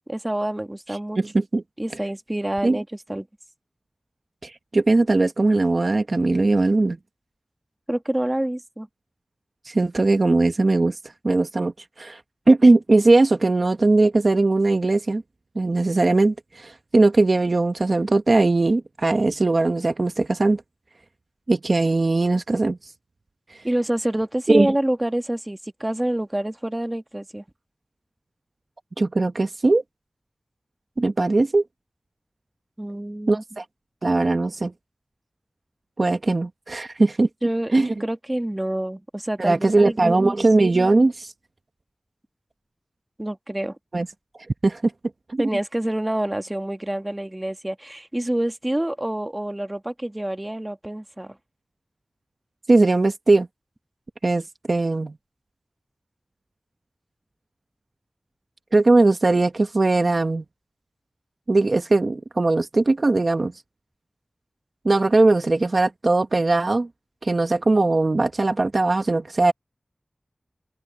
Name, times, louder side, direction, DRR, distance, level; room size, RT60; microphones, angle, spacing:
voice 1, 0.1-1.2 1.8-3.3 7.9-8.9 23.6-27.4 32.8-33.4 37.4-40.3 43.2-43.8 45.4-51.4, right 1 dB, 20° right, 1.7 m, -27 dB
voice 2, 1.2-1.6 2.6-2.8 4.4-7.0 9.6-11.0 11.2-11.7 12.0-12.2 12.5-15.2 15.5-20.6 21.5-22.8 24.5-24.7 29.0-29.8 31.0-31.6 33.3-33.6 34.0-34.7 36.0-37.3 37.7-37.9 39.4-41.3 43.9-44.1 44.6-44.9 45.3-45.4 52.7-53.5 54.2-55.1 58.7-60.4 61.5-63.5 64.8-66.9 67.2-69.5, right 2 dB, 55° right, 1.0 m, -19 dB
open air
wide cardioid pair, 65°, 0 cm